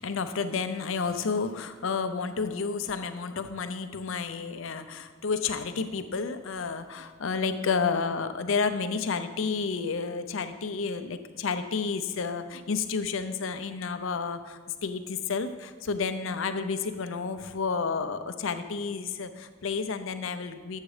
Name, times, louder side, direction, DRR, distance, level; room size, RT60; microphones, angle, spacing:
voice 1, 0.0-20.8, left 5 dB, 70° left, 10 dB, 0.6 m, -31 dB
8.1 x 7.4 x 4.9 m, 1.4 s
head